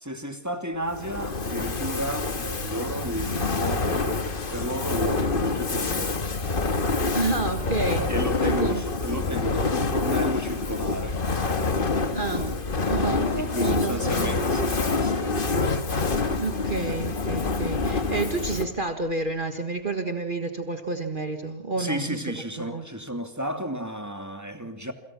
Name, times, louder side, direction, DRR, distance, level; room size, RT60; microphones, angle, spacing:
voice 1, 0.0-4.2 4.5-6.1 8.1-11.2 13.1-15.4 21.8-24.9, equal, 10° right, 2.5 m, -32 dB
Fire, 0.9-18.8, left 3 dB, 40° left, 1.7 m, -27 dB
voice 2, 7.1-8.1 8.4-8.8 12.1-12.6 12.9-14.5 16.4-22.9, right 3 dB, 35° right, 1.9 m, -30 dB
28.5 x 26.0 x 6.0 m
omnidirectional pair, 1.5 m